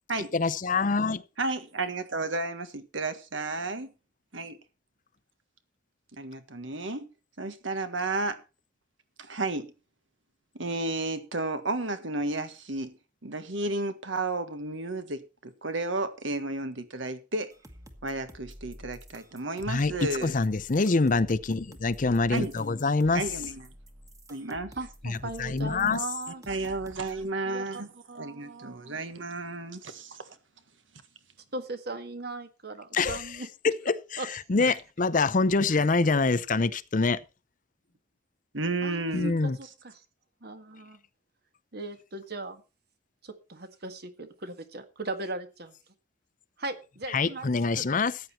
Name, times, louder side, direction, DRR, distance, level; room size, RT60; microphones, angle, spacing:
voice 1, 0.3-1.2 19.7-23.2 25.0-26.0 32.9-33.2 33.6-37.2 39.1-39.6 47.1-48.2, left 3 dB, 45° left, 0.6 m, -25 dB
voice 2, 1.4-3.9 4.3-4.6 6.1-7.1 7.4-8.4 9.2-9.7 10.5-13.0 13.2-17.5 18.0-20.3 22.3-22.5 23.1-23.7 24.3-24.7 26.5-27.9 28.2-30.3 34.6-34.7 35.7-35.8 38.5-39.3, right 2 dB, 80° right, 1.6 m, -32 dB
sound 1, 17.5-27.3, equal, 20° right, 1.5 m, -49 dB
voice 3, 24.7-26.4 27.4-27.6 28.1-29.0 31.5-33.5 34.2-34.3 38.8-39.3 39.6-40.0 40.4-41.0 41.7-42.6 43.2-45.7 46.6-47.5 47.8-47.9, right 2 dB, 55° right, 1.7 m, -38 dB
14.0 x 9.3 x 4.3 m
head